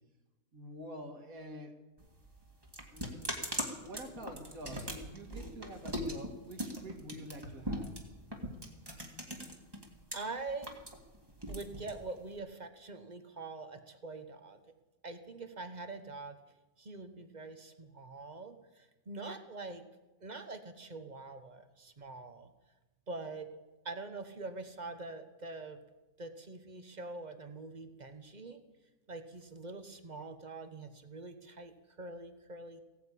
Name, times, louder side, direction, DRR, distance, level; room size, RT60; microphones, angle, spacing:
voice 1, 0.5-1.8 2.9-3.3 3.8-8.0, right 1 dB, 65° right, 5 dB, 2.2 m, -47 dB
sound 1, 2.0-10.2 10.5-12.4, equal, 15° right, 2.0 m, -40 dB
voice 2, 10.1-10.8 11.5-14.6 15.0-16.4 16.8-19.8 20.2-22.5 23.1-23.5 23.8-25.8 26.2-28.6 29.1-32.8, right 3 dB, 30° right, 8 dB, 1.0 m, -44 dB
16.5 x 9.4 x 8.4 m, 1.1 s
omnidirectional pair, 1.6 m